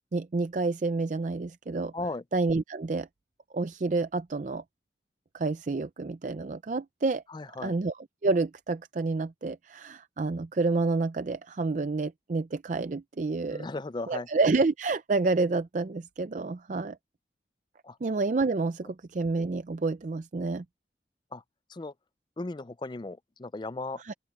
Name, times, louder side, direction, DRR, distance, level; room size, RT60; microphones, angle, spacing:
voice 1, 0.1-1.9 2.3-3.1 3.5-4.6 5.3-7.2 7.6-13.7 14.1-17.0 18.0-20.6 24.0-24.1, right 3 dB, 45° right, 0.4 m, -29 dB
voice 2, 7.3-7.7 13.5-14.3 17.8-18.0 21.3-21.4 21.7-21.9 22.4-24.0, left 2 dB, 25° left, 0.4 m, -36 dB
open air
head